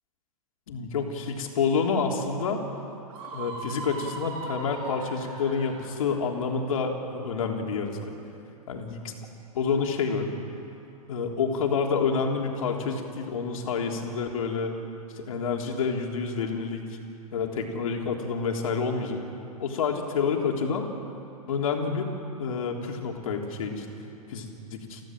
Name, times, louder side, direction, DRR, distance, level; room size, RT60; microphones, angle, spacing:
voice 1, 0.7-2.6 3.3-8.1 8.7-9.1 9.5-10.3 11.1-14.7 15.2-16.8 17.3-19.2 19.6-20.9 21.5-22.1 22.4-23.9 24.3-25.0, left 5 dB, 65° left, 2 dB, 3.6 m, -28 dB
Screaming, 3.1-6.0, right 3 dB, 45° right, 6.5 m, -39 dB
29.0 x 16.5 x 7.7 m, 2.7 s
figure-of-eight pair, 105°, 19 cm